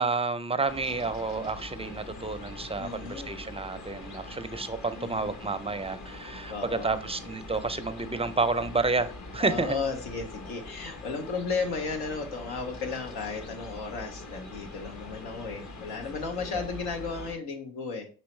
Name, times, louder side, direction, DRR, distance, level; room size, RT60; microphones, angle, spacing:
voice 1, 0.0-9.8 16.5-16.6, right 3 dB, 15° right, 11 dB, 0.4 m, -30 dB
sound 1, 0.7-17.3, left 2 dB, 50° left, 1.0 m, -43 dB
voice 2, 2.8-3.4 5.0-5.3 6.5-7.0 9.4-18.1, left 4 dB, 85° left, 4 dB, 0.8 m, -34 dB
5.4 x 3.0 x 3.1 m, 0.39 s
supercardioid pair, 45°, 37 cm